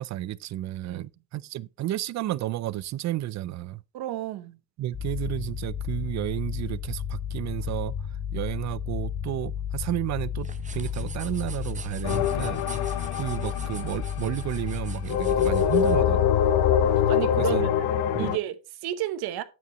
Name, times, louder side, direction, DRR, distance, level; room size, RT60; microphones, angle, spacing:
voice 1, 0.0-3.8 4.8-7.9 8.3-10.5 10.7-12.6 13.2-16.3 17.4-17.7 18.1-18.3, right 14 dB, 50° right, 0.5 m, -32 dB
voice 2, 3.9-4.6 17.1-17.7 18.2-19.4, right 13 dB, 85° right, 1.0 m, -32 dB
sound 1, 4.9-17.0, left 8 dB, 30° left, 1.0 m, -33 dB
sound 2, 10.4-16.0, right 5 dB, 20° right, 0.7 m, -44 dB
sound 3, 12.0-14.5 15.1-18.4, left 9 dB, 80° left, 0.7 m, -24 dB
9.2 x 8.3 x 3.0 m
cardioid pair, 130°, 37 cm